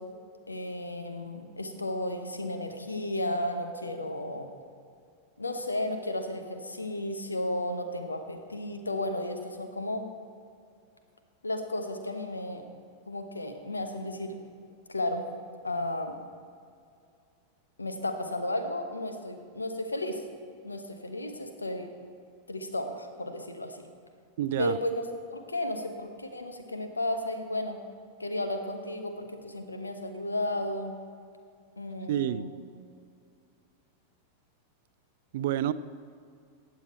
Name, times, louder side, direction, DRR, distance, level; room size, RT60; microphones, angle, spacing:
voice 1, 0.5-4.5 5.4-10.0 11.4-12.6 13.1-14.4 14.9-15.2 15.6-16.2 17.8-20.2 20.6-21.9 22.5-23.9 24.6-25.0 25.3-27.8 28.2-30.9 31.8-32.5, left 1 dB, 80° left, 6 dB, 1.1 m, -33 dB
voice 2, 24.4-24.8 32.1-32.4 35.3-35.7, right 11 dB, 55° right, 15 dB, 0.4 m, -28 dB
15.5 x 8.8 x 4.4 m, 2.3 s
figure-of-eight pair, 90°, 0 cm